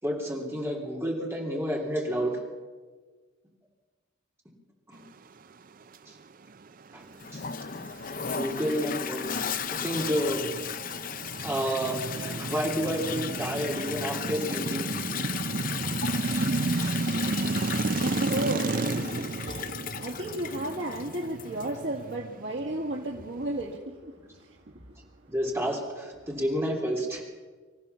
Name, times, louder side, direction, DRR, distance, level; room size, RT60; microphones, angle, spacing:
voice 1, 0.0-2.4 4.9-5.0 6.1-6.2 6.9-7.1 7.3-7.4 8.2-9.2 9.7-10.5 11.4-14.9 16.8-17.0 25.3-27.2, equal, 15° right, -1 dB, 3.6 m, -30 dB
sound 1, 7.0-23.8, right 3 dB, 45° right, 0.5 m, -33 dB
Toilet flush, 7.2-21.8, left 8 dB, 45° left, 0.6 m, -36 dB
voice 2, 18.0-25.0, right 1 dB, 65° right, -3 dB, 2.3 m, -34 dB
25.5 x 14.5 x 7.1 m, 1.4 s
head